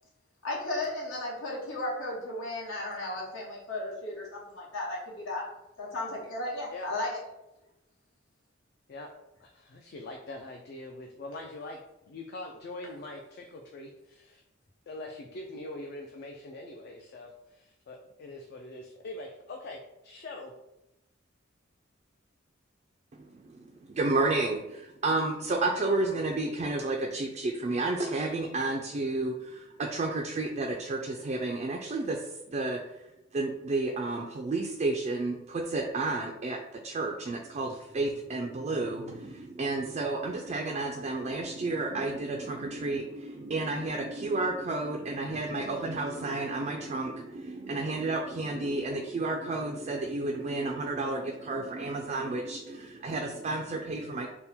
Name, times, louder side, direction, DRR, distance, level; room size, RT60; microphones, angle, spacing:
voice 1, 0.4-5.4 5.8-7.2, left 2 dB, 80° left, -5 dB, 1.4 m, -35 dB
voice 2, 9.7-11.8 12.1-14.4 14.9-20.5, left 2 dB, 55° left, 1 dB, 0.4 m, -43 dB
voice 3, 23.1-33.0 33.3-54.3, right 2 dB, 35° right, 1 dB, 0.3 m, -31 dB
3.5 x 2.1 x 4.3 m, 0.92 s
head